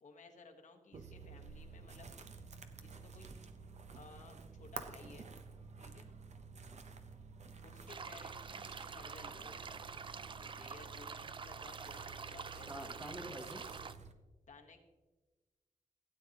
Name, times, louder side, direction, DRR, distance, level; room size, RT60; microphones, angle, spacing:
voice 1, 0.0-2.1 2.8-3.3 3.9-5.3 5.8-6.1 7.6-9.8 10.4-12.7 13.0-13.5 14.5-14.8, left 4 dB, 65° left, 2 dB, 1.3 m, -57 dB
sound 1, 0.9-14.1, right 4 dB, 55° right, 0.8 m, -52 dB
sound 2, 7.9-13.9, right 5 dB, 40° right, 0.3 m, -47 dB
voice 2, 12.7-13.6, right 1 dB, 20° right, 3 dB, 1.0 m, -46 dB
16.5 x 9.0 x 2.9 m, 1.2 s
wide cardioid pair, 145°, 14 cm